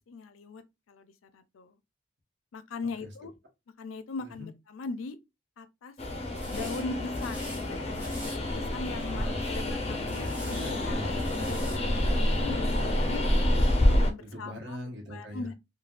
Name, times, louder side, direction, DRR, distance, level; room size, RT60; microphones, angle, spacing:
voice 1, 0.1-0.6 0.9-1.1 1.3-1.7 2.5-3.3 3.8-5.2 5.6-5.9 6.5-10.3 10.8-11.0 11.4-13.2 13.8-14.8 15.1-15.5, left 3 dB, 90° left, 0.4 m, -40 dB
Train, 6.0-14.1, left 1 dB, 30° left, 0.5 m, -28 dB
sound 1, 6.3-6.8 7.1-7.6 7.9-8.4 8.9-9.3 10.1-10.7 11.1-11.8, equal, 10° right, 1.4 m, -45 dB
voice 2, 9.1-10.1 10.4-11.7 14.2-15.5, equal, 60° right, 1.1 m, -42 dB
3.3 x 2.2 x 2.4 m
head